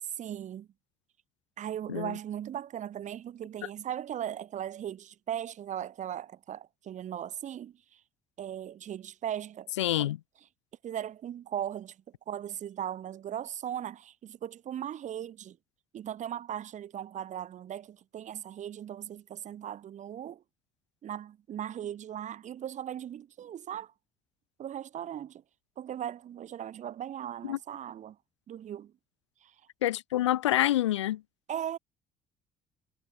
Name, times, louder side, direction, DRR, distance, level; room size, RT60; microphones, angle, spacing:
voice 1, 0.2-0.7 1.6-8.0 8.4-9.7 10.0-10.1 10.8-12.0 12.3-15.6 15.9-20.4 21.0-23.9 24.6-25.4 25.8-28.2 28.5-28.9 29.4-29.5 31.5-31.8, right 10 dB, 55° right, 6.4 m, -38 dB
voice 2, 9.8-10.2 27.4-27.6 29.8-31.2, left 14 dB, 85° left, 4.0 m, -27 dB
hypercardioid pair, 50°, 15 cm